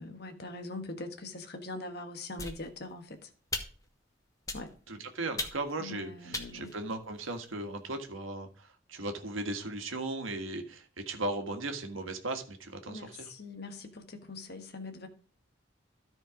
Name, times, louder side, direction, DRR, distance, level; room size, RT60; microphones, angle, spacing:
voice 1, 0.0-3.3 4.5-4.7 5.8-6.7 12.9-15.1, left 2 dB, 55° left, 1.4 m, -42 dB
sound 1, 2.4-3.0 3.5-4.0 4.5-4.9 5.4-5.8 6.3-7.5, left 2 dB, 15° left, 1.2 m, -39 dB
voice 2, 4.9-13.3, right 2 dB, 85° right, 1.6 m, -37 dB
13.5 x 4.5 x 5.0 m
head